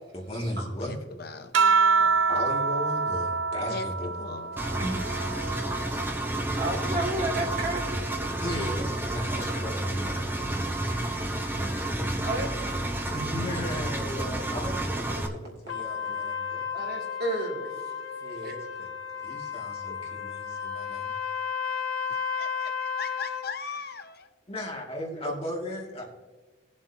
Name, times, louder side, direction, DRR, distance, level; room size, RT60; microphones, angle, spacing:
voice 1, 0.1-1.0 2.0-4.2 8.4-10.5 13.1-16.7 18.2-18.9 19.2-21.1 24.5-26.0, left 1 dB, 30° left, -3 dB, 2.3 m, -36 dB
voice 2, 0.8-1.5 3.7-4.6 10.9-12.4 22.4-24.3, left 5 dB, 55° left, 8 dB, 0.7 m, -40 dB
sound 1, 1.5-6.3 6.8-8.5 9.7-10.2, right 4 dB, 75° right, 0.5 m, -28 dB
Engine, 4.6-15.3, right 1 dB, 10° right, 0.8 m, -30 dB
voice 3, 6.5-8.1 12.2-12.6 16.0-16.2 16.7-17.7 18.4-18.5, right 2 dB, 55° right, -2 dB, 3.0 m, -31 dB
Trumpet, 15.7-23.5, left 7 dB, 85° left, 1.1 m, -33 dB
20.0 x 7.4 x 2.9 m, 1.3 s
head